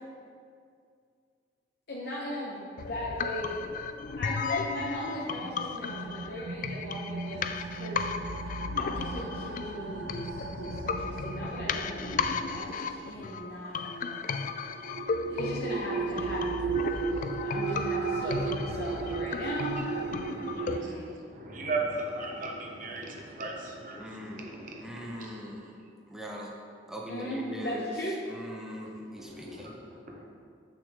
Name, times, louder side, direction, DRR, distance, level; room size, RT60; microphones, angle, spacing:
voice 1, 1.9-3.5 4.2-8.1 8.8-14.4 15.3-19.8 20.5-21.1 27.1-28.1, equal, 65° left, -5 dB, 1.0 m, -38 dB
sound 1, 2.8-20.8, left 5 dB, 50° left, 0.3 m, -35 dB
sound 2, 5.2-20.9, right 6 dB, 80° right, 0.4 m, -37 dB
voice 2, 18.9-19.3 19.8-20.9 21.3-25.4 29.2-30.2, right 2 dB, 50° right, 0 dB, 1.0 m, -38 dB
voice 3, 24.0-25.8 26.1-26.5 26.9-27.9 28.3-29.7, equal, 5° right, -2 dB, 0.9 m, -41 dB
8.3 x 6.2 x 3.6 m, 2.3 s
head